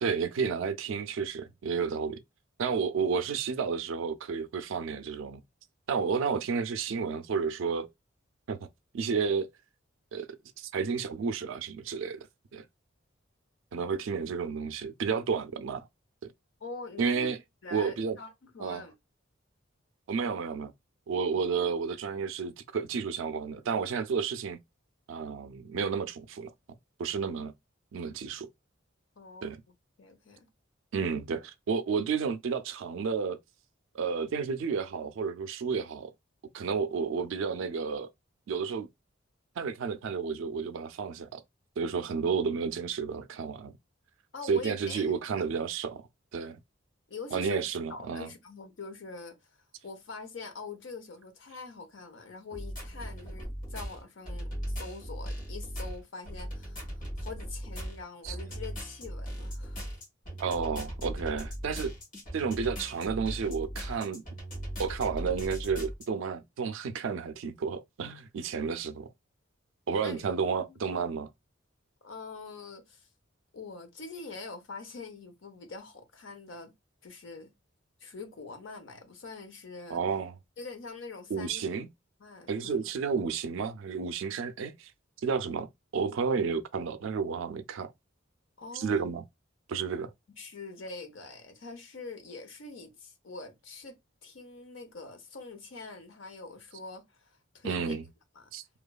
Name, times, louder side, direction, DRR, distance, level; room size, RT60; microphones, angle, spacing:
voice 1, 0.0-2.2 2.6-5.4 5.9-7.9 8.5-8.7 8.9-9.5 10.1-10.3 10.6-12.3 12.5-12.6 13.7-15.9 17.0-17.4 17.7-18.2 18.6-18.8 20.1-20.7 21.1-24.6 25.1-26.5 27.0-27.5 27.9-28.5 29.4-29.6 30.9-33.4 33.9-36.1 36.5-38.1 38.5-38.9 39.6-41.4 41.8-43.7 44.5-46.1 46.3-46.6 47.3-48.3 58.2-58.3 60.4-61.9 62.3-64.2 64.8-69.1 69.9-71.3 79.9-80.4 81.3-81.9 82.5-84.9 85.2-87.9 88.7-89.2 89.7-90.1 97.6-98.0 98.5-98.6, right 5 dB, 75° right, 0.4 m, -31 dB
voice 2, 16.6-17.3 17.6-19.0 29.2-29.5 30.0-30.5 44.3-45.1 47.1-47.6 47.9-49.4 49.8-59.8 62.5-62.6 70.0-70.8 72.0-73.1 73.5-76.7 77.0-77.5 78.0-80.0 80.6-81.7 82.2-82.8 88.6-89.1 90.4-94.0 94.2-98.0 98.3-98.5, left 3 dB, 70° left, 0.7 m, -44 dB
sound 1, 52.5-66.1, equal, 45° left, 1.4 m, -38 dB
2.9 x 2.2 x 2.2 m
head